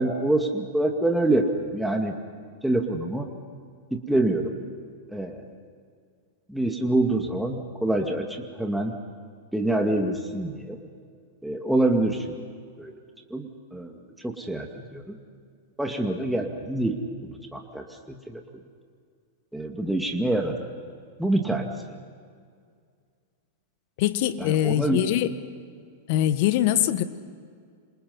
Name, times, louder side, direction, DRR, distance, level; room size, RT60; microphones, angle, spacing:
voice 1, 0.0-2.1 2.6-3.3 3.9-4.5 5.1-5.5 6.5-8.9 9.5-10.8 11.4-12.3 12.8-12.9 13.3-15.1 15.8-18.4 19.5-20.6 21.2-21.7 24.4-25.0, right 2 dB, 5° right, 2 dB, 2.3 m, -26 dB
voice 2, 24.0-25.3 26.1-27.0, left 12 dB, 55° left, 12 dB, 1.5 m, -23 dB
28.5 x 26.5 x 5.6 m, 2.1 s
hypercardioid pair, 105°, 0 cm